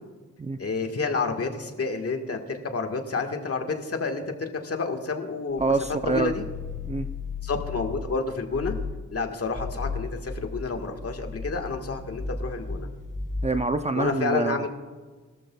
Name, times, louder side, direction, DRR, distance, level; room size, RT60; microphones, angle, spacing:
voice 1, 0.6-5.7 6.0-6.4 7.4-8.8 9.1-12.9 13.9-14.7, left 4 dB, 50° left, 4 dB, 1.5 m, -29 dB
sound 1, 5.5-8.2 8.5-9.0 9.4-13.7, left 4 dB, 25° left, 3.8 m, -35 dB
voice 2, 5.6-6.3 6.9-7.1 13.4-14.7, right 3 dB, 20° right, 8 dB, 0.5 m, -26 dB
22.0 x 13.0 x 2.3 m, 1.4 s
wide cardioid pair, 110°, 31 cm